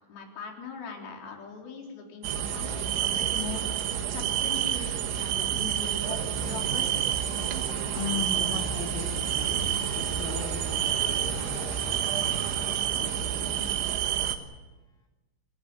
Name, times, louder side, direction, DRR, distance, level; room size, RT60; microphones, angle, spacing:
voice 1, 0.1-7.3, left 5 dB, 55° left, 1 dB, 5.4 m, -41 dB
sound 1, 2.2-14.4, right 10 dB, 80° right, 3.9 m, -29 dB
sound 2, 6.3-13.4, right 1 dB, 5° left, 6.8 m, -40 dB
voice 2, 7.5-13.8, left 4 dB, 85° left, 3 dB, 4.4 m, -39 dB
27.0 x 15.5 x 8.8 m, 1.2 s
omnidirectional pair, 5.4 m